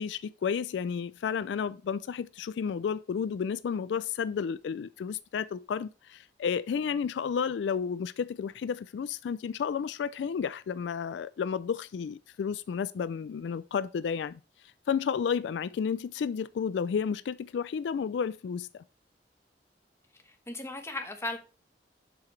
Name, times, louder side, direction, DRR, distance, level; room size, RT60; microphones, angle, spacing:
voice 1, 0.0-14.4 14.9-18.7, left 6 dB, 90° left, 0.3 m, -32 dB
voice 2, 20.2-21.4, left 2 dB, 15° left, 1.1 m, -36 dB
7.6 x 5.8 x 3.2 m
head